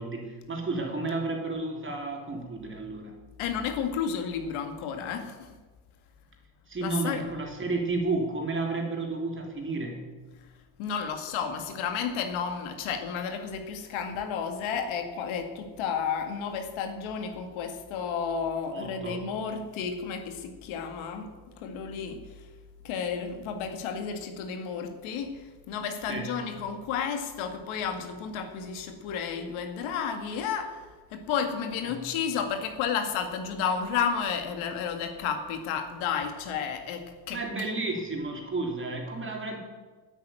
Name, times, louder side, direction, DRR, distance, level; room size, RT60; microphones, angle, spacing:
voice 1, 0.0-3.2 6.7-10.0 18.7-19.3 26.1-26.3 31.8-32.0 37.3-39.6, right 3 dB, 25° right, 1 dB, 3.5 m, -32 dB
voice 2, 3.4-5.6 6.8-7.2 10.8-21.3 21.6-22.5 22.8-37.7, left 6 dB, 75° left, 6 dB, 2.0 m, -32 dB
10.0 x 9.0 x 8.9 m, 1.3 s
cardioid pair, 105°, 49 cm